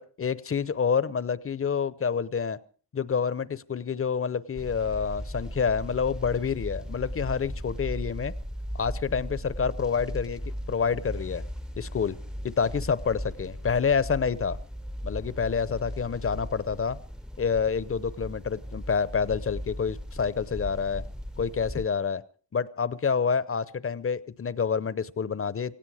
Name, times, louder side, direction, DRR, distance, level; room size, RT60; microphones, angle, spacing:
voice 1, 0.0-2.6 2.9-8.3 8.7-11.4 11.8-12.2 12.4-14.6 15.0-17.0 17.4-21.0 21.4-22.2 22.5-25.8, left 6 dB, 35° left, 18 dB, 0.7 m, -28 dB
sound 1, 4.6-21.9, equal, ahead, 0.7 m, -37 dB
18.0 x 16.5 x 4.9 m, 0.43 s
cardioid pair, 100°, 41 cm